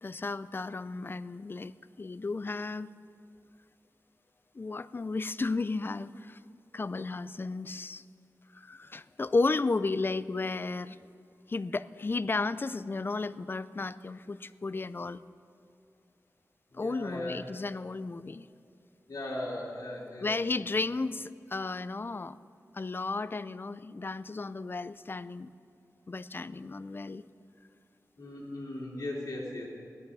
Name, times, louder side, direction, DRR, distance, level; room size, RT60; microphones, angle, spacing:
voice 1, 0.0-2.9 4.5-6.4 6.7-8.0 8.5-11.1 11.5-15.2 16.7-18.5 20.2-22.4 22.7-25.5 26.1-27.2, left 3 dB, 35° left, 15 dB, 0.4 m, -33 dB
voice 2, 16.7-17.5 19.1-20.3 28.2-29.7, left 1 dB, 65° left, -6 dB, 2.5 m, -38 dB
17.0 x 11.5 x 5.6 m, 2.4 s
wide cardioid pair, 90°, 6 cm